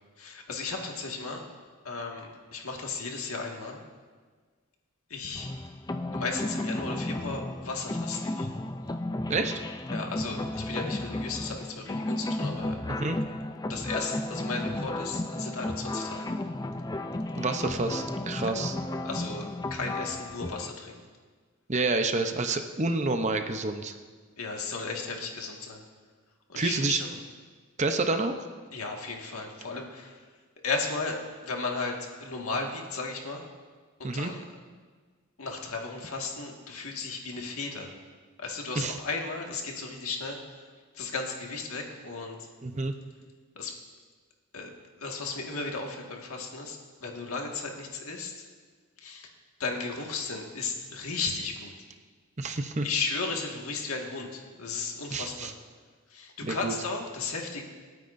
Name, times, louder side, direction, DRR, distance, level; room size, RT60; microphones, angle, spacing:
voice 1, 0.2-1.4 1.8-3.8 5.1-5.5 6.1-8.5 9.9-12.8 13.7-16.3 18.4-18.6 19.0-21.0 24.4-25.8 26.5-27.1 28.7-30.2 30.6-33.5 34.0-34.5 35.4-37.9 38.4-40.4 40.9-42.5 43.6-43.8 44.5-44.7 45.0-48.5 49.0-49.3 49.6-51.7 52.8-55.5 56.1-57.6, left 4 dB, 85° left, 1 dB, 1.8 m, -35 dB
Drum Vocoder, 5.3-20.7, left 1 dB, 20° left, 0.4 m, -33 dB
voice 2, 12.9-13.2 17.4-18.7 21.7-23.9 26.5-27.0 27.8-28.3 34.0-34.3 38.8-39.0 42.6-42.9 52.4-52.9 55.1-55.5 56.4-56.7, right 3 dB, 30° right, 6 dB, 0.7 m, -28 dB
27.0 x 9.3 x 2.6 m, 1.5 s
head